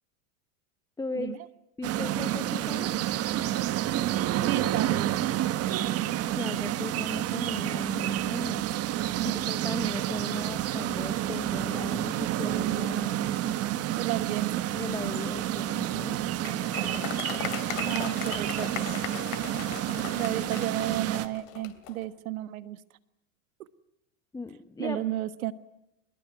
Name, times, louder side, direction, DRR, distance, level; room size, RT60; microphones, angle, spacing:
voice 1, 1.0-1.4 1.8-2.9 6.3-8.7 9.2-13.6 14.7-16.2 24.3-25.0, left 3 dB, 10° left, 9 dB, 1.0 m, -37 dB
sound 1, 1.8-21.3, right 13 dB, 35° right, 1.3 m, -29 dB
voice 2, 4.4-5.4 9.2-9.4 13.9-14.6 17.8-18.9 20.1-22.8 24.8-25.5, right 14 dB, 85° right, 13 dB, 1.5 m, -32 dB
Applause, 16.4-22.0, left 13 dB, 70° left, 3.0 m, -38 dB
23.5 x 21.5 x 9.3 m, 0.85 s
supercardioid pair, 130°, 41 cm